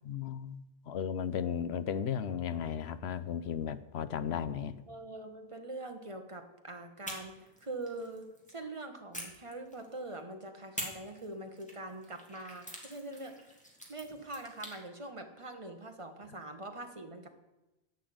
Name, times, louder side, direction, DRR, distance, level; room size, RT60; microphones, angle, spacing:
voice 1, 0.1-0.6 0.9-4.7, left 8 dB, 80° left, 14 dB, 1.0 m, -35 dB
voice 2, 4.9-7.3 7.6-13.5 13.9-17.3, right 2 dB, 30° right, 5 dB, 1.4 m, -43 dB
sound 1, 7.0-8.6 9.1-10.2 10.8-14.8, equal, 5° left, 2.4 m, -46 dB
11.0 x 8.2 x 8.8 m, 1.0 s
omnidirectional pair, 1.1 m